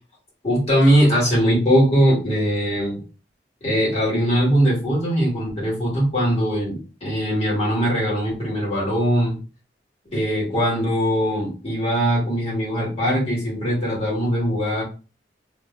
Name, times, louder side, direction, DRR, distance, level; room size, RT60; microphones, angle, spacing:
voice 1, 0.4-3.0 3.6-9.4 10.1-14.8, equal, 35° left, -5 dB, 2.0 m, -21 dB
3.7 x 3.3 x 2.2 m, 0.33 s
head